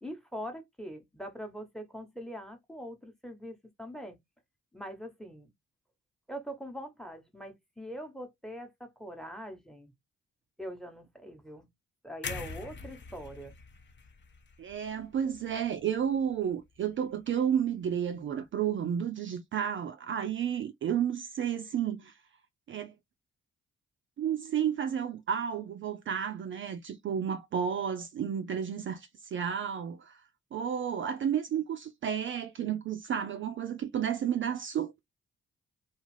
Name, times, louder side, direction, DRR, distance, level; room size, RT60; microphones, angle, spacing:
voice 1, 0.0-4.2 4.7-5.5 6.3-9.9 10.6-11.7 12.0-13.5, equal, ahead, 0.9 m, -43 dB
sound 1, 12.2-16.3 16.6-16.8, left 5 dB, 40° left, 0.7 m, -44 dB
voice 2, 14.6-22.2 22.7-22.9 24.2-30.2 30.5-35.0, right 8 dB, 45° right, 0.4 m, -32 dB
2.5 x 2.3 x 3.2 m
hypercardioid pair, 45°, 29 cm